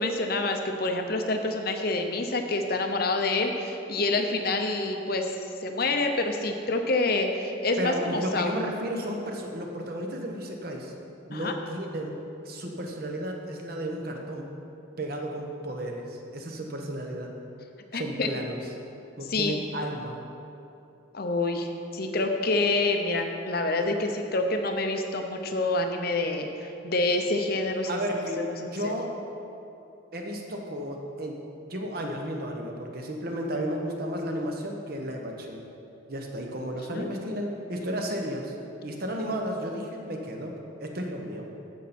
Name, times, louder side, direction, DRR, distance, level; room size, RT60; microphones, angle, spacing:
voice 1, 0.0-5.3 5.6-8.5 11.3-11.5 17.9-18.3 19.3-19.6 21.1-21.7 21.9-28.0 28.5-28.9 36.9-37.1, left 2 dB, 50° left, 5 dB, 0.8 m, -27 dB
voice 2, 7.8-10.9 11.3-12.2 12.4-14.5 15.0-17.3 17.9-18.6 19.2-20.2 27.9-29.1 30.1-31.4 31.7-35.6 36.1-38.5 38.8-40.5 40.8-41.5, equal, 50° right, 2 dB, 1.1 m, -33 dB
14.5 x 5.8 x 4.3 m, 2.8 s
head